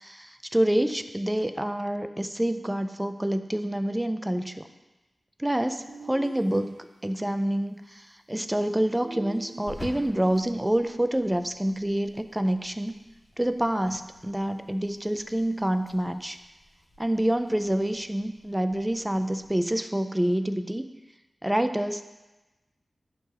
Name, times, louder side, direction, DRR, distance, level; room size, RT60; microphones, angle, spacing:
voice 1, 0.0-4.7 5.4-6.7 7.0-12.9 13.4-16.4 17.0-20.9 21.4-22.0, right 1 dB, 10° right, 9 dB, 0.4 m, -27 dB
sound 1, 5.9-7.1 8.4-10.6, right 3 dB, 75° right, 0.5 m, -45 dB
sound 2, 7.6-19.8, equal, 20° left, 2.1 m, -51 dB
11.0 x 3.8 x 2.9 m, 1.1 s
wide cardioid pair, 80°, 0 cm